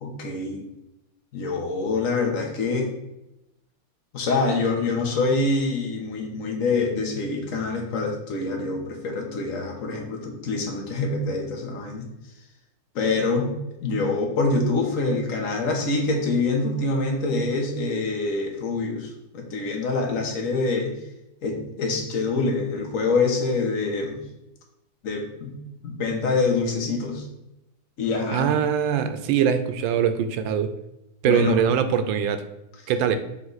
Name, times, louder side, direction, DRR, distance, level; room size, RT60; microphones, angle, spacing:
voice 1, 0.0-0.6 1.3-2.9 4.1-12.1 12.9-13.6 13.8-20.9 21.4-24.2 25.0-25.5 25.8-27.2 28.0-28.5 31.2-31.6, left 3 dB, 50° left, 1 dB, 1.3 m, -25 dB
voice 2, 28.3-30.7 31.2-32.4 32.9-33.2, right 8 dB, 80° right, 9 dB, 1.3 m, -22 dB
7.1 x 3.4 x 4.0 m, 0.88 s
omnidirectional pair, 2.1 m